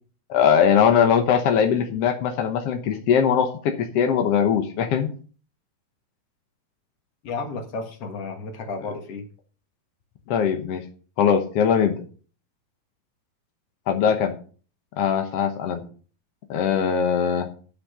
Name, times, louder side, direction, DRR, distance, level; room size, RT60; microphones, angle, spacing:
voice 1, 0.3-5.1 10.3-10.8 11.2-12.0 13.9-14.3 15.0-15.8 16.5-17.5, left 7 dB, 75° left, 6 dB, 1.4 m, -21 dB
voice 2, 7.2-9.2, left 3 dB, 50° left, 5 dB, 2.3 m, -32 dB
8.9 x 8.5 x 5.6 m, 0.40 s
omnidirectional pair, 4.3 m